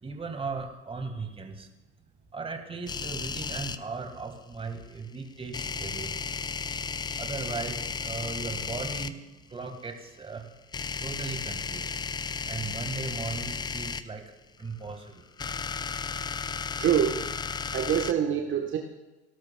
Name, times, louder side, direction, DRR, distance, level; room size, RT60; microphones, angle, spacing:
voice 1, 0.0-1.7 2.3-6.1 6.7-9.2 9.5-10.5 11.0-12.0 12.5-14.2 14.6-15.3 16.0-16.2, right 4 dB, 15° right, 5 dB, 1.8 m, -37 dB
sound 1, 2.9-3.8 5.5-9.1 10.7-14.0 15.2-18.1, left 5 dB, 15° left, 0.4 m, -34 dB
voice 2, 16.8-17.2 17.7-18.8, right 9 dB, 35° right, 2 dB, 1.2 m, -25 dB
17.5 x 11.5 x 2.3 m, 1.1 s
hypercardioid pair, 80°, 33 cm